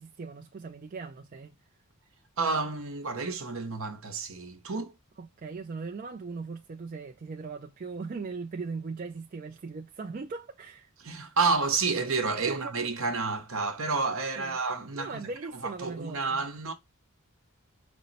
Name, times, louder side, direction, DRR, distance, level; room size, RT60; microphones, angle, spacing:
voice 1, 0.0-1.6 5.2-10.9 12.4-12.7 14.4-14.6 14.9-16.5, right 4 dB, 35° right, 0.3 m, -39 dB
voice 2, 2.4-4.9 11.0-15.2 15.6-16.7, right 4 dB, 65° right, 0.8 m, -30 dB
5.3 x 2.0 x 4.0 m
head